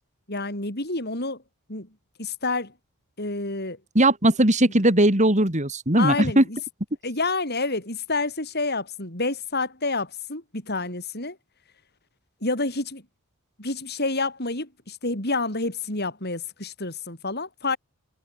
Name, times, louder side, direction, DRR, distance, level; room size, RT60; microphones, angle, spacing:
voice 1, 0.3-1.4 1.7-1.9 2.2-2.7 3.2-3.8 6.0-6.6 7.0-11.4 12.4-13.0 13.6-17.8, left 3 dB, 50° left, 7.8 m, -28 dB
voice 2, 4.0-6.4, right 1 dB, 35° right, 3.8 m, -19 dB
head